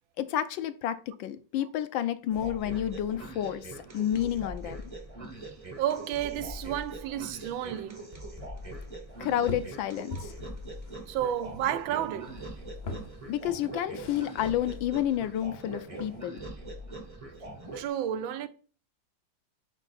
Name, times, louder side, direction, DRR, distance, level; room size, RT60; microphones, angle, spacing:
voice 1, 0.2-3.7 3.9-4.8 9.2-10.3 13.3-16.4, left 11 dB, 80° left, 1.3 m, -30 dB
sound 1, 2.3-17.9, right 1 dB, 25° right, 0.8 m, -42 dB
voice 2, 5.8-8.0 10.1-10.2 11.1-12.5 17.7-18.5, right 10 dB, 85° right, 1.4 m, -31 dB
sound 2, 9.1-16.2, left 2 dB, 45° left, 0.8 m, -45 dB
5.3 x 4.6 x 4.1 m
omnidirectional pair, 2.1 m